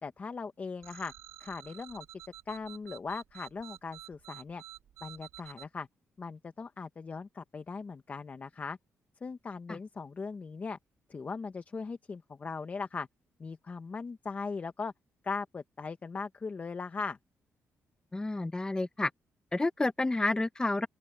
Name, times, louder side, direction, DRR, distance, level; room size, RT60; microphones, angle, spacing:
voice 1, 0.0-1.1 1.4-2.1 2.5-4.6 5.0-5.9 6.2-8.8 9.2-10.8 11.1-13.1 13.4-14.9 15.2-17.2, left 4 dB, 30° left, 1.1 m, -39 dB
sound 1, 0.8-5.7, right 13 dB, 90° right, 1.8 m, -50 dB
voice 2, 18.1-19.1 19.5-20.9, left 2 dB, 15° left, 0.8 m, -30 dB
open air
cardioid pair, 135°, 5 cm